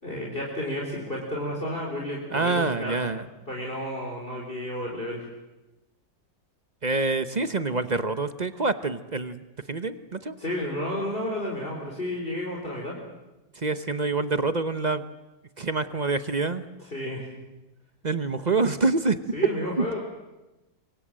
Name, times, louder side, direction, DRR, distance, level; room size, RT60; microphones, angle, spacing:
voice 1, 0.0-2.9 3.5-5.2 10.4-13.0 16.9-17.3 19.3-20.0, left 1 dB, 30° left, -2 dB, 4.4 m, -31 dB
voice 2, 2.3-3.3 6.8-10.4 13.5-15.0 15.6-16.6 18.0-19.2 19.8-20.0, right 3 dB, 35° right, 11 dB, 0.7 m, -26 dB
26.5 x 24.0 x 7.6 m, 1.0 s
omnidirectional pair, 2.0 m